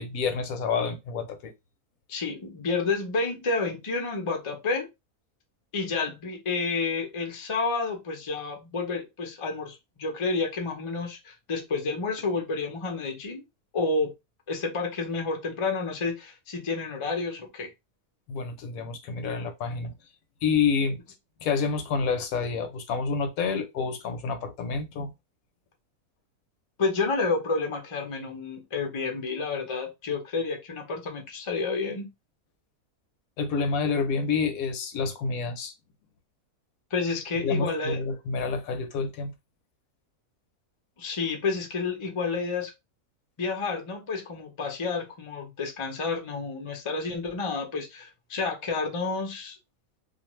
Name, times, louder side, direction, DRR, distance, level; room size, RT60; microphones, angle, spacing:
voice 1, 0.0-1.5 18.3-19.9 20.4-21.0 21.4-25.1 33.4-35.7 37.4-39.3, left 5 dB, 70° left, 0.9 m, -28 dB
voice 2, 2.1-4.9 5.7-13.4 13.7-14.1 14.5-17.7 26.8-32.1 36.9-38.0 41.0-42.7 43.4-49.6, left 4 dB, 50° left, 0.3 m, -30 dB
2.4 x 2.4 x 3.0 m
omnidirectional pair, 1.6 m